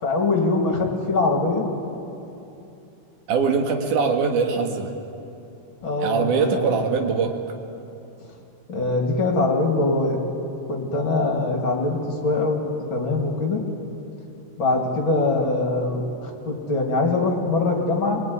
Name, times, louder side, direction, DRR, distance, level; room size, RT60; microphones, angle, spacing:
voice 1, 0.0-1.7 5.8-6.8 8.7-10.2 10.7-13.6 14.6-18.2, left 3 dB, 40° left, 1 dB, 2.9 m, -23 dB
voice 2, 3.3-4.9 6.0-7.3, right 5 dB, 65° right, 3 dB, 3.3 m, -22 dB
26.0 x 20.0 x 9.5 m, 2.8 s
omnidirectional pair, 3.9 m